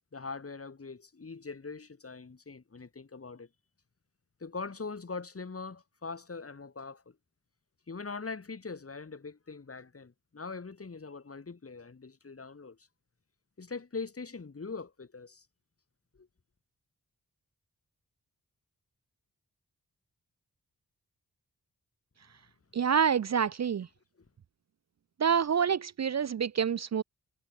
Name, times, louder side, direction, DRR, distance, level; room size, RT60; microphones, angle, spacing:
voice 1, 0.1-3.5 4.4-7.2 7.9-12.8 13.6-15.5 16.2-16.3, left 4 dB, 40° left, 3.5 m, -42 dB
voice 2, 22.7-23.9 25.2-27.0, right 7 dB, 50° right, 0.5 m, -27 dB
wide cardioid pair, 125°, 35 cm